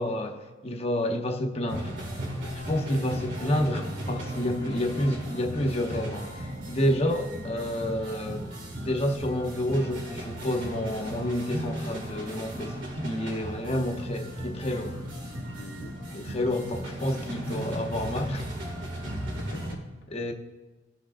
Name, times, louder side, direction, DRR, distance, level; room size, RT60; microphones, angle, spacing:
voice 1, 0.0-1.9 2.7-8.5 8.8-15.0 16.1-18.5 20.1-20.3, left 1 dB, 35° left, 0.9 m, -29 dB
sound 1, 1.7-19.7, equal, 80° right, 2.1 m, -36 dB
voice 2, 4.6-5.2 15.5-16.1 19.3-20.2, left 2 dB, 65° left, 0.6 m, -46 dB
18.5 x 6.2 x 2.5 m
head